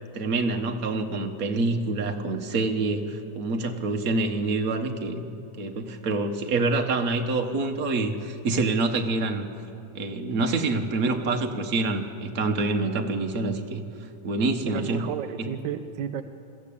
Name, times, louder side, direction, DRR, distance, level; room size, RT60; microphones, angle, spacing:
voice 1, 0.1-5.2 5.6-9.5 9.9-13.8 14.2-15.0 15.4-15.5, right 3 dB, 55° right, 5 dB, 1.8 m, -26 dB
voice 2, 14.7-16.2, right 9 dB, 85° right, 8 dB, 1.4 m, -32 dB
22.0 x 14.5 x 8.6 m, 2.7 s
omnidirectional pair, 1.9 m